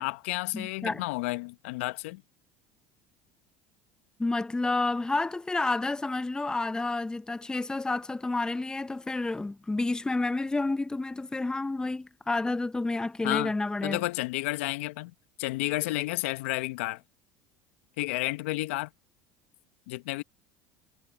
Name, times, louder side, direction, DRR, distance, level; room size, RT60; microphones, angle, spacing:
voice 1, 0.0-2.2 13.2-13.5 13.8-15.1 15.4-17.0 18.0-18.9 19.9-20.2, left 20 dB, 75° left, 1.2 m, -31 dB
voice 2, 0.5-1.0 4.2-14.0, left 2 dB, 10° left, 0.7 m, -30 dB
hypercardioid pair, 80°, 7 cm